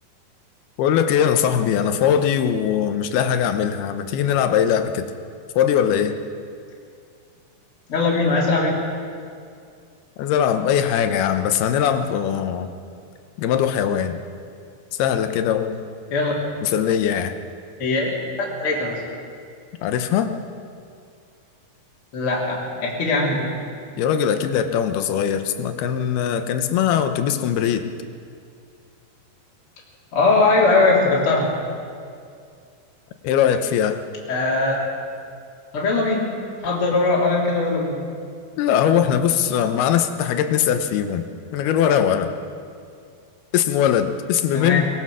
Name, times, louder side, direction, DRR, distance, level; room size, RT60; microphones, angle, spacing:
voice 1, 0.8-5.1 5.6-6.2 10.2-12.7 13.4-14.2 15.0-15.8 16.6-17.3 19.8-20.3 24.0-27.9 33.2-34.0 38.6-41.3 41.5-42.3 43.5-44.8, left 9 dB, 75° left, 8 dB, 2.7 m, -21 dB
voice 2, 7.9-8.8 16.1-16.4 17.8-19.0 22.1-23.5 30.1-31.5 34.3-34.8 35.7-36.3 36.6-38.0 44.5-44.8, left 3 dB, 35° left, -4 dB, 3.5 m, -20 dB
23.0 x 20.0 x 6.3 m, 2.3 s
omnidirectional pair, 5.0 m